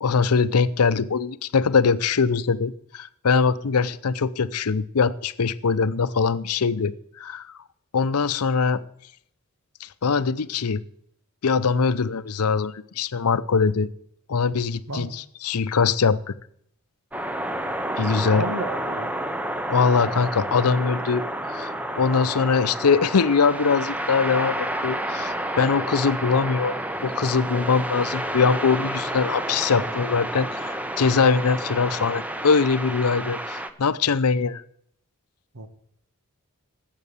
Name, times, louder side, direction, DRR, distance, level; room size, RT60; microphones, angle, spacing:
voice 1, 0.0-7.5 7.9-8.8 9.8-10.8 11.4-13.9 14.3-16.3 18.0-18.5 19.7-21.2 21.5-26.8 27.0-34.6, left 5 dB, 90° left, 15 dB, 0.6 m, -22 dB
sound 1, 17.1-33.7, right 1 dB, 5° right, 0.8 m, -30 dB
voice 2, 18.3-19.1 35.5-35.7, right 2 dB, 80° right, 10 dB, 1.5 m, -32 dB
12.5 x 8.3 x 8.3 m, 0.69 s
head